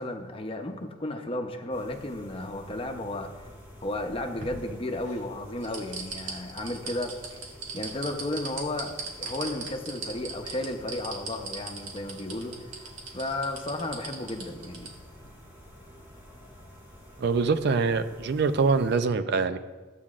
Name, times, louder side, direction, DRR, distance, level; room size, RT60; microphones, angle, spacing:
voice 1, 0.0-3.5 3.8-7.4 7.7-8.9 9.2-14.9, left 1 dB, 30° left, 4 dB, 0.7 m, -34 dB
sound 1, 1.7-19.0, equal, 10° right, 2.0 m, -50 dB
sound 2, 3.9-5.2 5.6-14.9 15.2-15.3, right 4 dB, 85° right, 1.7 m, -38 dB
voice 2, 17.2-19.6, right 4 dB, 55° right, 11 dB, 0.4 m, -24 dB
13.5 x 8.4 x 2.4 m, 1.3 s
head